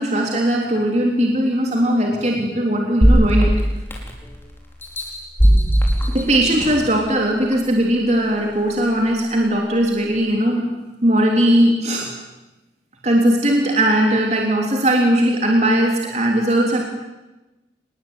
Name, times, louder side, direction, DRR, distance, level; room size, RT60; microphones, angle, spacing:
voice 1, 0.0-3.5 6.1-10.7 11.0-12.1 13.0-16.8, right 1 dB, 40° right, 1 dB, 3.4 m, -18 dB
sound 1, 3.0-4.3 4.8-6.9 7.5-7.6, equal, 10° left, 4.9 m, -17 dB
28.0 x 20.5 x 9.6 m, 1.1 s
head